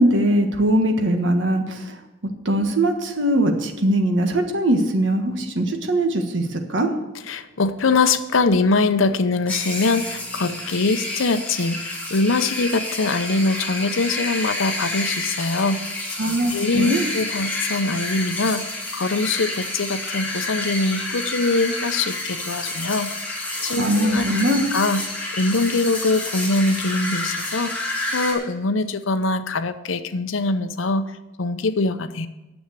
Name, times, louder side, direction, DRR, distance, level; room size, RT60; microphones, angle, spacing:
voice 1, 0.0-2.0 2.4-6.9 16.2-17.0 23.7-24.6, right 1 dB, 65° right, 5 dB, 1.5 m, -21 dB
voice 2, 7.3-15.8 16.5-23.1 23.6-24.2 24.7-25.0 25.3-27.9 28.1-31.1 31.4-32.3, left 3 dB, 80° left, 11 dB, 0.7 m, -23 dB
sound 1, 9.5-28.3, left 1 dB, 10° left, 2.5 m, -29 dB
9.6 x 7.1 x 8.3 m, 1.0 s
head